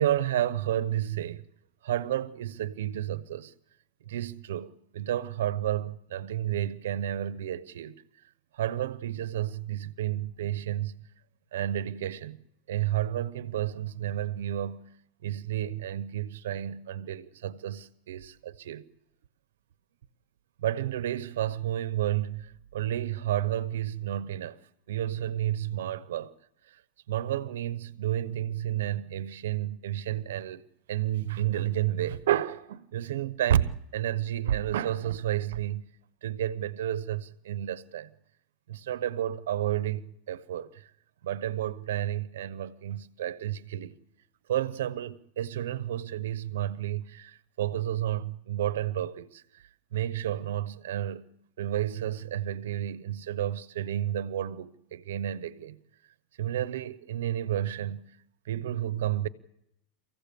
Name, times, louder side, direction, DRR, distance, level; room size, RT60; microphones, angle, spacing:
voice 1, 0.0-1.4 1.8-3.5 4.1-4.7 4.9-8.0 8.6-10.9 11.5-12.4 12.7-14.8 15.2-18.8 20.6-22.5 22.7-24.6 24.9-26.3 27.1-30.6 30.9-35.8 36.2-38.1 38.7-40.7 41.2-44.0 44.5-49.4 49.9-51.3 51.6-55.8 56.4-58.1 58.5-59.3, right 11 dB, 85° right, 0.9 m, -31 dB
25.0 x 16.0 x 6.9 m
supercardioid pair, 125°, 0 cm